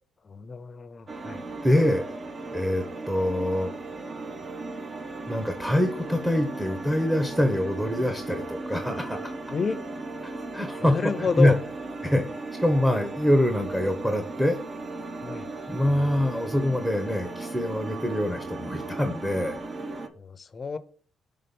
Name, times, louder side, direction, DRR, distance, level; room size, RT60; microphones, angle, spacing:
voice 1, 0.2-1.4 9.5-9.9 10.8-11.6 15.2-15.5 20.2-20.8, left 5 dB, 40° left, 13 dB, 0.6 m, -29 dB
sound 1, 1.1-20.1, right 3 dB, 40° right, 0.9 m, -37 dB
voice 2, 1.6-2.2 2.5-3.7 5.3-9.3 10.5-10.9 11.4-11.5 12.0-12.2 12.6-14.6 15.7-19.6, left 1 dB, 5° right, 6 dB, 1.0 m, -24 dB
5.7 x 3.6 x 5.4 m, 0.43 s
cardioid pair, 90°, 0 cm